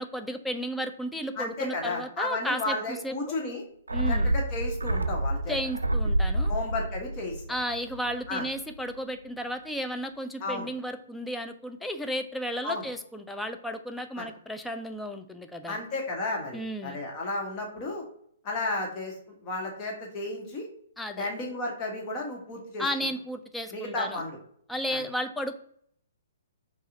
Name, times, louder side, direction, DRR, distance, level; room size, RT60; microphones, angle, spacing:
voice 1, 0.0-3.2 3.9-4.3 5.5-6.5 7.5-15.8 16.5-17.0 21.0-21.3 22.8-24.2 24.7-25.6, equal, 5° left, 6 dB, 0.3 m, -33 dB
voice 2, 1.4-3.6 4.1-5.6 6.5-7.3 8.3-8.4 10.4-10.7 12.6-12.9 14.2-14.3 15.7-18.0 18.4-19.1 19.4-20.7 21.2-22.8 23.7-24.4 24.9-25.0, left 2 dB, 30° left, 0 dB, 1.3 m, -33 dB
sound 1, 3.9-8.5 8.8-8.9, right 1 dB, 80° right, 0.3 m, -28 dB
5.5 x 2.4 x 2.7 m, 0.64 s
figure-of-eight pair, 125°, 0 cm